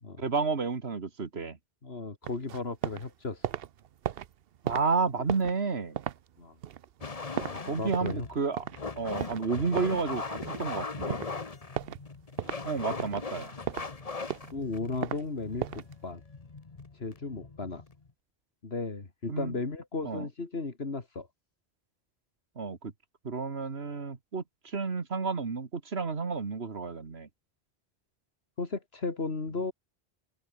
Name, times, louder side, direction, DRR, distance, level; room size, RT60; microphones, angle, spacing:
voice 1, 0.2-1.6 4.6-6.0 7.7-8.7 9.0-11.2 12.6-13.5 19.3-19.5 20.0-20.3 22.6-22.9 23.2-27.3, right 4 dB, 85° right, 2.1 m, -31 dB
voice 2, 1.8-3.4 6.4-6.6 7.4-8.3 13.4-13.5 14.5-16.2 16.9-17.8 18.6-21.3 28.6-29.7, left 3 dB, 80° left, 2.7 m, -35 dB
sound 1, 2.2-3.1 3.3-8.3 8.6-8.8 9.2-10.8 11.1-11.4 11.8-12.0 12.4-12.6 13.0-13.9 14.2-15.2 15.6-15.9, right 10 dB, 70° right, 0.9 m, -36 dB
sound 2, 7.0-18.1, left 4 dB, 35° left, 1.3 m, -40 dB
omnidirectional pair, 1.0 m